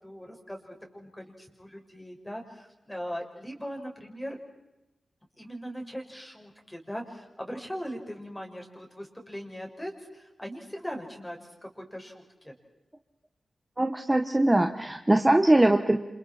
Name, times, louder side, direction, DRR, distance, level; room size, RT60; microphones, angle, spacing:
voice 1, 0.0-4.4 5.4-12.5, equal, 10° left, 1 dB, 5.8 m, -40 dB
voice 2, 13.8-16.0, right 1 dB, 20° right, 5 dB, 1.4 m, -21 dB
29.0 x 27.5 x 4.5 m, 0.98 s
cardioid pair, 75°, 0 cm